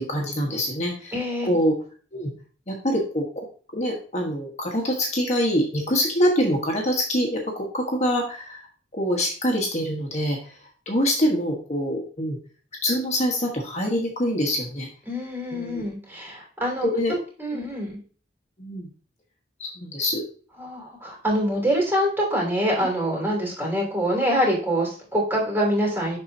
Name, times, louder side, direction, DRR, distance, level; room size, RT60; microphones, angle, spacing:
voice 1, 0.0-1.1 1.5-1.7 2.1-2.3 2.7-3.4 3.7-8.6 8.9-10.5 10.9-12.4 12.8-14.9 15.5-15.8 16.8-17.1 17.5-17.7 18.6-18.9 19.6-20.2, equal, 40° left, 0 dB, 1.4 m, -25 dB
voice 2, 1.1-1.5 15.1-16.9 17.4-18.0 20.6-26.2, equal, 15° right, -3 dB, 3.3 m, -25 dB
11.5 x 4.3 x 2.8 m, 0.41 s
head